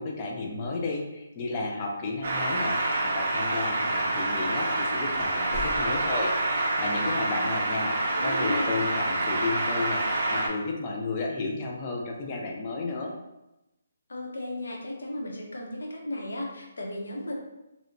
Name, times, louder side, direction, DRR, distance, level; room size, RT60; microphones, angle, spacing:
voice 1, 0.0-6.3 6.5-13.2, left 3 dB, 20° left, -1 dB, 0.3 m, -32 dB
sound 1, 2.2-10.5, right 2 dB, 40° right, 0.5 m, -27 dB
sound 2, 5.1-7.2, left 2 dB, 55° left, 1.2 m, -43 dB
voice 2, 8.1-8.7 14.1-17.3, left 1 dB, 90° left, -1 dB, 0.7 m, -34 dB
2.8 x 2.1 x 2.5 m, 0.93 s
hypercardioid pair, 175°, 0 cm